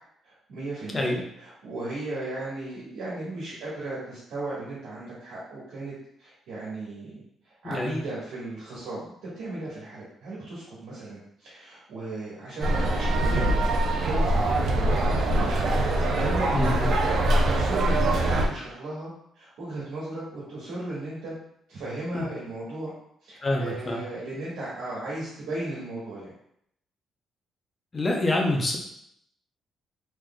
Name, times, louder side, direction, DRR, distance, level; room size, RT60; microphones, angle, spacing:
voice 1, 0.2-5.9 6.2-16.5 16.9-19.1 19.4-21.3 21.7-22.9 23.2-26.3, right 2 dB, 85° right, -7 dB, 1.3 m, -36 dB
voice 2, 7.6-8.0 16.5-16.9 22.1-22.3 23.4-24.0 27.9-28.8, left 1 dB, 20° left, 0 dB, 0.6 m, -26 dB
sound 1, 12.6-18.5, right 1 dB, 60° right, 0.5 m, -23 dB
3.7 x 3.2 x 2.2 m, 0.72 s
cardioid pair, 160°, 0 cm